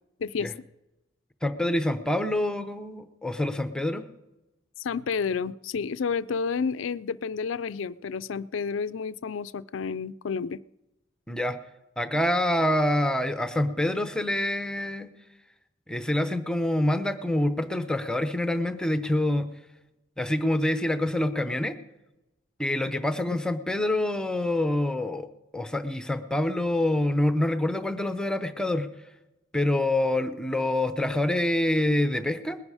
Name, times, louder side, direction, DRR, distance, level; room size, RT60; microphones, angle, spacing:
voice 1, 0.2-0.7 4.8-10.6 23.3-23.4, left 5 dB, 70° left, 17 dB, 0.4 m, -30 dB
voice 2, 1.4-4.0 11.3-11.6 12.0-15.1 15.9-19.5 20.2-21.8 22.6-25.3 25.5-28.9 29.5-32.6, left 1 dB, 5° left, 9 dB, 0.7 m, -26 dB
20.0 x 10.5 x 4.9 m, 0.96 s
head